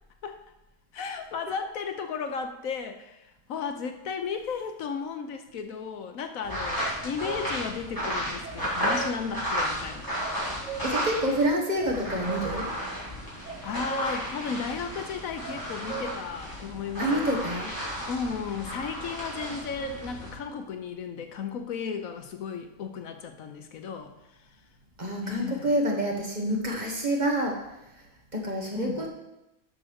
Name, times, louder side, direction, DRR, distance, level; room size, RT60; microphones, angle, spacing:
voice 1, 0.9-10.1 13.6-17.3 18.1-24.5 25.2-25.7 28.7-29.0, left 6 dB, 70° left, 7 dB, 1.1 m, -34 dB
sound 1, 6.4-11.5 11.8-20.3, equal, 15° left, 3.8 m, -33 dB
sound 2, 6.8-7.5 8.4-9.1 10.2-11.0 11.8-12.5 13.4-14.1 15.4-16.1 19.4-20.0, right 7 dB, 60° right, 2.1 m, -38 dB
voice 2, 10.8-12.7 17.0-17.7 25.0-27.6 28.0-28.1 28.3-29.1, right 1 dB, 30° right, -1 dB, 1.4 m, -27 dB
7.7 x 6.3 x 6.3 m, 0.91 s
omnidirectional pair, 1.5 m